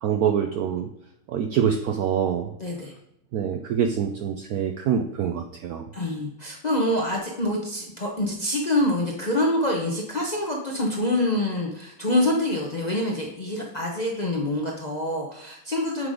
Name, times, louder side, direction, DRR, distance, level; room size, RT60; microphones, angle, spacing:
voice 1, 0.0-0.9 1.3-2.5 3.3-5.9, right 8 dB, 85° right, 6 dB, 0.8 m, -25 dB
voice 2, 2.6-2.9 5.9-16.1, left 1 dB, 65° left, -1 dB, 0.4 m, -26 dB
7.8 x 3.9 x 4.9 m, 0.77 s
omnidirectional pair, 2.2 m